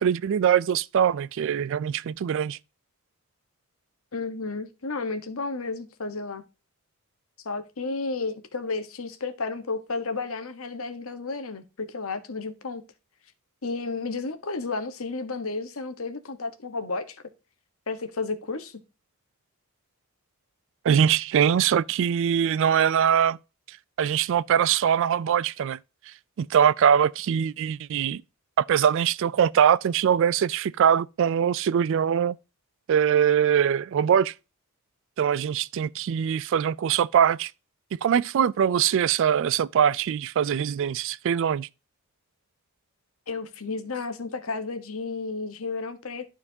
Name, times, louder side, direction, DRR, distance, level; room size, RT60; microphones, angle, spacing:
voice 1, 0.0-2.6 20.8-23.4 24.0-25.8 26.4-28.2 28.6-32.4 32.9-34.3 35.2-37.5 37.9-41.7, right 8 dB, 60° right, 0.3 m, -22 dB
voice 2, 4.1-6.4 7.4-12.8 13.6-17.2 17.9-18.8 43.3-46.3, left 3 dB, 65° left, 1.1 m, -32 dB
12.0 x 4.4 x 2.7 m
head